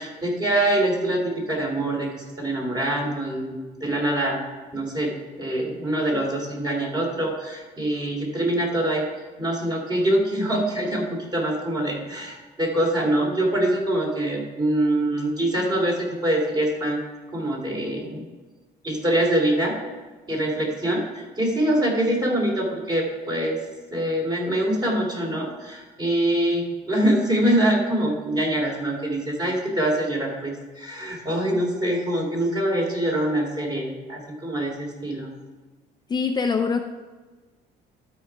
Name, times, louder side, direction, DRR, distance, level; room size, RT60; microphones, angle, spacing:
voice 1, 0.0-3.5 3.8-4.4 4.7-9.1 9.4-17.0 17.3-18.2 18.8-19.7 20.3-23.6 23.9-35.3, right 1 dB, 25° right, -1 dB, 2.9 m, -24 dB
voice 2, 36.1-36.8, left 5 dB, 25° left, 5 dB, 0.5 m, -23 dB
12.0 x 4.8 x 4.6 m, 1.3 s
cardioid pair, 110°, 17 cm